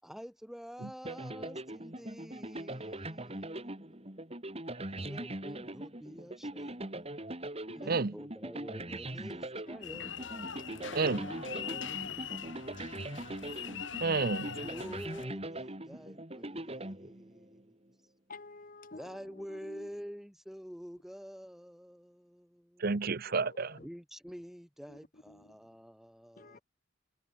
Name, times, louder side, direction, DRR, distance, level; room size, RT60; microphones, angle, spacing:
voice 1, 0.0-4.2 4.9-7.1 7.7-10.2 11.0-13.0 14.6-17.8 18.9-22.9 23.8-26.6, equal, ahead, 4.1 m, -48 dB
sound 1, 1.0-17.6, right 1 dB, 30° right, 4.8 m, -42 dB
sound 2, 9.8-15.3, left 7 dB, 65° left, 1.8 m, -42 dB
voice 2, 10.5-11.0 11.6-11.8 18.3-19.0 26.4-26.6, left 3 dB, 45° left, 1.5 m, -50 dB
voice 3, 14.0-14.6 22.8-23.8, right 4 dB, 50° right, 0.8 m, -30 dB
head